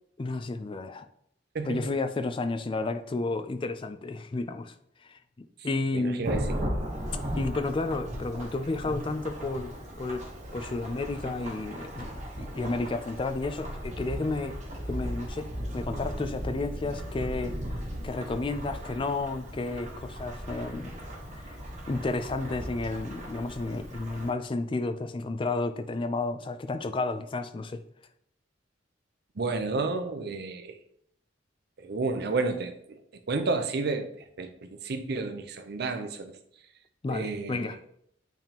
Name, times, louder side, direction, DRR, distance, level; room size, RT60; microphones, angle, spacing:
voice 1, 0.2-1.1 1.6-4.7 5.1-6.3 7.3-9.7 10.0-10.3 10.5-12.1 12.4-14.6 14.9-17.6 18.0-21.0 21.4-21.5 21.9-27.8 37.0-37.8, left 3 dB, 25° left, 9 dB, 0.4 m, -32 dB
voice 2, 1.5-2.0 5.9-6.5 29.4-30.8 31.8-33.0 33.3-34.1 34.4-36.3 37.1-37.8, right 3 dB, 55° right, 7 dB, 0.6 m, -31 dB
Thunderstorm / Rain, 6.2-24.3, equal, 40° right, 1.2 m, -37 dB
8.9 x 3.6 x 2.9 m, 0.71 s
head